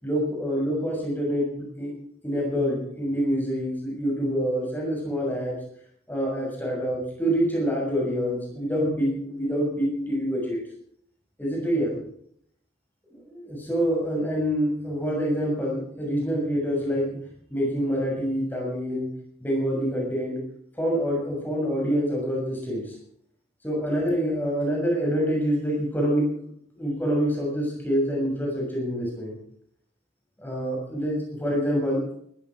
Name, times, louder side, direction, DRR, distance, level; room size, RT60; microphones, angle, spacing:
voice 1, 0.0-1.9 2.2-5.6 6.1-10.6 11.4-12.0 13.1-17.2 17.5-19.1 19.4-20.4 20.8-22.9 23.6-26.3 26.7-29.4 30.4-32.1, equal, 10° left, -1 dB, 6.7 m, -26 dB
19.5 x 14.5 x 5.0 m, 0.68 s
head